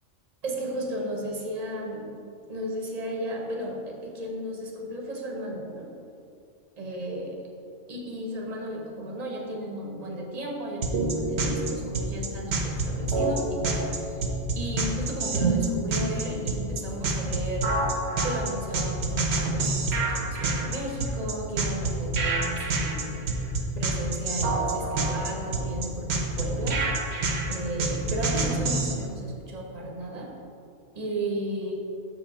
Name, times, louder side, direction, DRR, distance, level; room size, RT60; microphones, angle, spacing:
voice 1, 0.4-2.1 2.5-5.9 6.8-7.5 7.9-14.2 14.5-17.7 18.2-23.3 23.8-26.8 27.5-30.3 30.9-31.7, right 1 dB, 35° right, 0 dB, 1.0 m, -34 dB
sound 1, 10.8-28.9, right 3 dB, 60° right, 1.1 m, -27 dB
6.5 x 5.1 x 5.0 m, 2.6 s
omnidirectional pair, 1.3 m